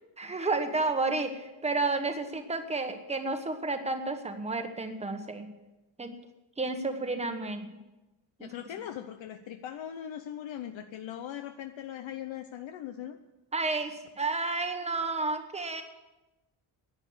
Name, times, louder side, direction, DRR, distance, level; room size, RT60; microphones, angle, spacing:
voice 1, 0.2-5.5 6.0-6.1 6.6-7.7 8.4-8.5 13.5-15.8, right 3 dB, 15° right, 6 dB, 1.1 m, -31 dB
voice 2, 8.4-13.2, left 10 dB, 65° left, 8 dB, 0.8 m, -40 dB
11.0 x 9.6 x 9.4 m, 1.0 s
wide cardioid pair, 175°, 49 cm